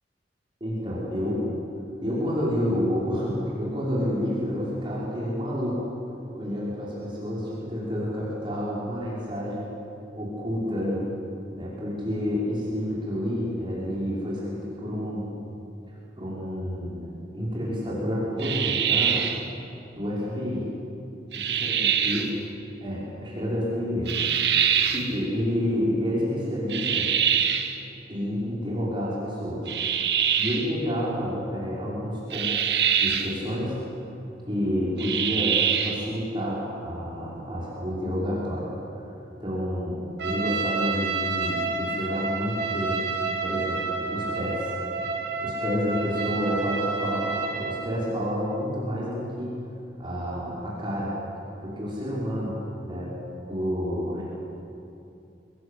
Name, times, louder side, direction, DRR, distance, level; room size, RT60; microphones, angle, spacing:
voice 1, 0.6-1.5 2.0-5.8 6.4-9.7 10.1-11.0 11.5-15.3 16.2-19.3 19.9-20.6 21.3-22.3 22.8-24.6 24.9-27.1 28.1-33.8 34.5-38.7 38.9-39.0 39.4-44.7 45.1-49.6 50.0-51.1 51.6-52.5 52.8-53.1 53.5-54.2, equal, 30° right, -7 dB, 5.7 m, -29 dB
sound 1, 18.4-19.5 21.3-22.3 24.1-25.1 26.7-27.8 29.7-30.7 32.3-33.4 35.0-36.1, right 8 dB, 65° right, 1.5 m, -24 dB
Trumpet, 40.2-47.9, right 4 dB, 85° right, 4.6 m, -29 dB
24.5 x 19.5 x 8.5 m, 2.8 s
head